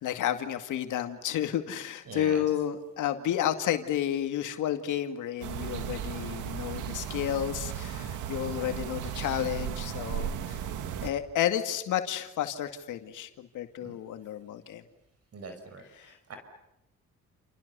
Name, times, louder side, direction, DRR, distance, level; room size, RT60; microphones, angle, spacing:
voice 1, 0.0-10.6 11.0-14.8, left 11 dB, 80° left, 7 dB, 2.3 m, -31 dB
voice 2, 2.0-2.4 13.8-14.0 15.3-16.4, right 4 dB, 55° right, 6 dB, 5.5 m, -43 dB
suburban ambience, 5.4-11.1, right 9 dB, 85° right, 2.2 m, -35 dB
29.0 x 29.0 x 7.0 m, 0.86 s
cardioid pair, 90°, 30 cm